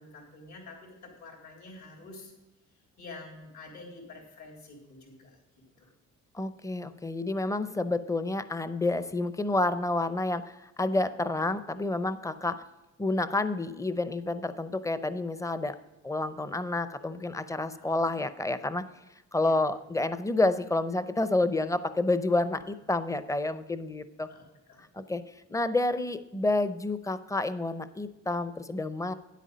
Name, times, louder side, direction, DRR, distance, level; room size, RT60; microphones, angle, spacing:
voice 1, 0.0-2.3 3.0-5.9 17.7-18.0 19.4-19.6 24.2-24.8, left 2 dB, 70° left, 0 dB, 3.8 m, -48 dB
voice 2, 6.3-12.6 13.0-15.8 16.0-18.8 19.3-24.3 24.8-25.2 25.5-29.1, left 2 dB, 10° left, 13 dB, 0.6 m, -29 dB
9.9 x 8.3 x 5.2 m, 1.0 s
cardioid pair, 90°, 30 cm